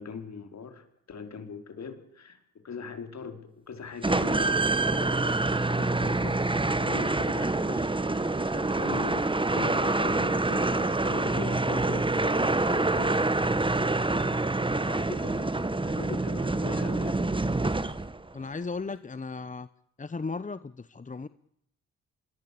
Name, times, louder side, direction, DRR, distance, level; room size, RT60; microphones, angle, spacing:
voice 1, 0.0-5.4 5.7-13.5 14.8-17.2, left 5 dB, 55° left, 7 dB, 4.7 m, -41 dB
sound 1, 4.0-18.3, right 2 dB, 15° right, 1.5 m, -26 dB
voice 2, 18.3-19.7 20.0-21.3, left 4 dB, 25° left, 15 dB, 1.0 m, -36 dB
24.5 x 22.5 x 8.6 m, 0.75 s
supercardioid pair, 60°, 32 cm